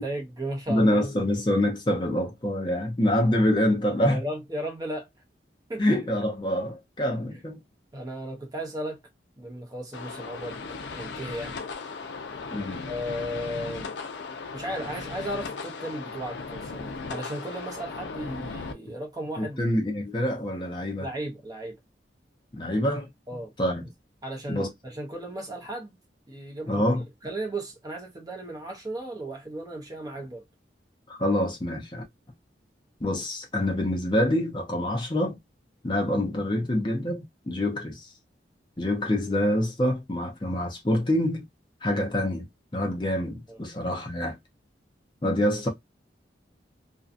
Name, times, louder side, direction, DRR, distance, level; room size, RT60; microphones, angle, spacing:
voice 1, 0.0-1.0 4.1-5.1 5.7-5.8 7.9-9.0 9.4-10.7 10.9-11.6 12.9-13.9 14.5-19.6 21.0-21.8 23.3-23.5 24.2-25.9 26.3-26.8 27.2-30.4 43.5-43.7, right 1 dB, 20° right, 0.7 m, -35 dB
voice 2, 0.7-4.2 5.8-7.6 12.5-12.9 19.4-21.1 22.5-23.1 23.6-23.8 24.5-24.7 26.7-27.0 31.1-32.0 33.0-35.4 35.8-38.1 38.8-41.5 41.8-44.4 45.2-45.7, left 1 dB, 25° left, 0.7 m, -26 dB
sound 1, 9.9-18.7, left 4 dB, 75° left, 0.5 m, -37 dB
2.6 x 2.2 x 2.4 m
head